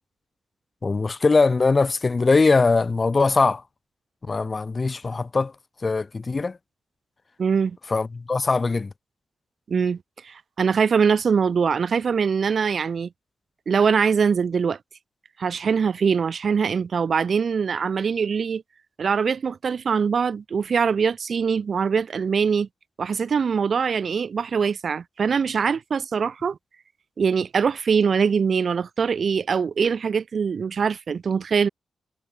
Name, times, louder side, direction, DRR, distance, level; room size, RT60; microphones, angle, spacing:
voice 1, 0.8-3.6 4.2-5.5 5.8-6.6 7.9-8.9, left 3 dB, 35° left, 1.1 m, -21 dB
voice 2, 7.4-7.8 9.7-10.0 10.2-13.1 13.7-14.8 15.4-18.6 19.0-22.7 23.0-26.6 27.2-31.7, right 6 dB, 60° right, 0.5 m, -23 dB
cardioid pair, 70°, 0 cm